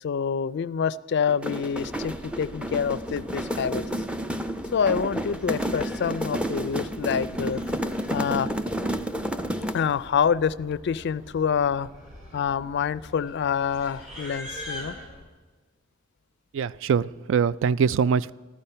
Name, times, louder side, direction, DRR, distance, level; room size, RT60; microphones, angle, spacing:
voice 1, 0.0-3.8 4.7-7.6 8.1-8.5 9.7-11.9 12.3-15.0, left 7 dB, 55° left, 18 dB, 0.4 m, -26 dB
sound 1, 1.3-10.0, equal, 5° right, 0.5 m, -31 dB
sound 2, 1.7-15.2, left 1 dB, 85° right, 5.5 m, -48 dB
Livestock farm animals working animals, 5.4-6.4 7.2-8.5 9.6-9.7 9.9-10.3 10.6-10.8 11.5-15.1, left 1 dB, 35° right, 4.5 m, -43 dB
voice 2, 16.5-18.3, right 6 dB, 65° right, 19 dB, 0.3 m, -23 dB
13.5 x 13.0 x 5.6 m, 1.3 s
head